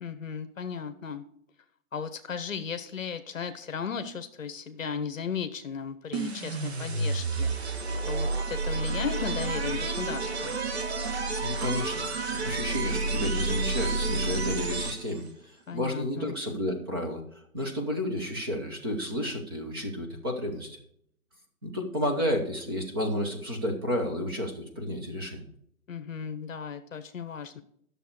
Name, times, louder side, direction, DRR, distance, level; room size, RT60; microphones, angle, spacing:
voice 1, 0.0-1.2 1.9-10.6 15.7-16.3 25.9-27.6, left 6 dB, 60° left, 10 dB, 0.9 m, -36 dB
sound 1, 6.1-15.3, right 3 dB, 45° right, 1.2 m, -30 dB
voice 2, 11.4-20.8 21.6-25.5, left 1 dB, 15° right, 1 dB, 0.9 m, -31 dB
11.0 x 6.7 x 4.7 m, 0.69 s
hypercardioid pair, 170°, 44 cm